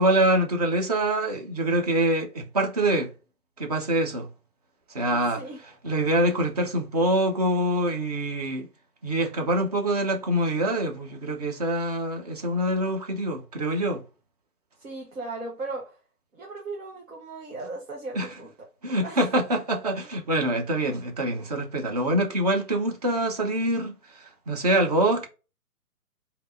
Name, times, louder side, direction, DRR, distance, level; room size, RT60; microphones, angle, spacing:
voice 1, 0.0-3.1 3.6-4.3 4.9-5.4 5.8-8.7 9.0-14.0 18.2-18.3 18.8-23.9 24.2-25.3, right 1 dB, 25° right, 0.6 m, -25 dB
voice 2, 5.1-5.6 14.8-16.0 16.3-18.7 19.0-19.2, right 3 dB, 60° right, 1.3 m, -37 dB
3.6 x 2.8 x 3.8 m
figure-of-eight pair, 130°, 46 cm